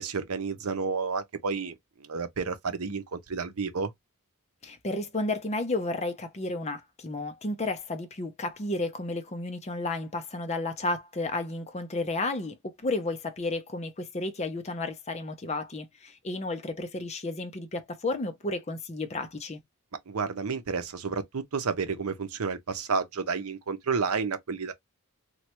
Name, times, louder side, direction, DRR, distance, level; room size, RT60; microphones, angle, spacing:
voice 1, 0.0-3.9 20.1-24.7, right 5 dB, 75° right, 0.7 m, -31 dB
voice 2, 4.6-19.6, left 2 dB, 30° left, 0.6 m, -32 dB
3.2 x 2.3 x 2.9 m
head